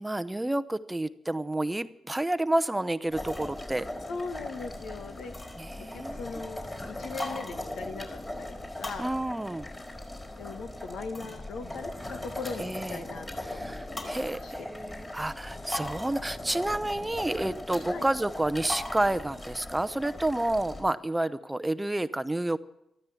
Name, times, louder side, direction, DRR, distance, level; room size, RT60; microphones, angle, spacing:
voice 1, 0.0-3.9 5.6-6.2 9.0-9.7 12.6-13.0 13.4-22.6, right 1 dB, 15° right, 14 dB, 0.7 m, -30 dB
sound 1, 3.1-20.8, left 1 dB, 25° left, 4.7 m, -39 dB
voice 2, 4.1-5.5 5.9-9.1 10.4-14.0 14.4-14.5 17.9-18.0, left 4 dB, 70° left, 7 dB, 1.7 m, -40 dB
14.0 x 13.5 x 7.2 m, 0.84 s
hypercardioid pair, 45°, 0 cm